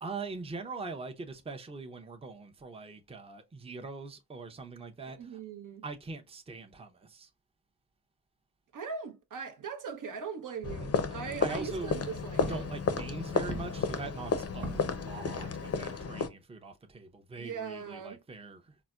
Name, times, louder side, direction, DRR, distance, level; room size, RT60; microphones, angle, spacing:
voice 1, 0.0-5.4 5.8-7.3 10.6-10.7 11.4-12.0 12.3-18.8, right 3 dB, 15° right, 0.6 m, -42 dB
voice 2, 5.2-5.8 8.7-12.7 17.4-18.2, right 6 dB, 55° right, 0.7 m, -40 dB
sound 1, 10.6-16.3, left 5 dB, 40° left, 0.6 m, -33 dB
Walk footsteps, 11.6-16.1, equal, 85° right, 1.1 m, -44 dB
4.0 x 2.1 x 2.3 m
supercardioid pair, 45°, 38 cm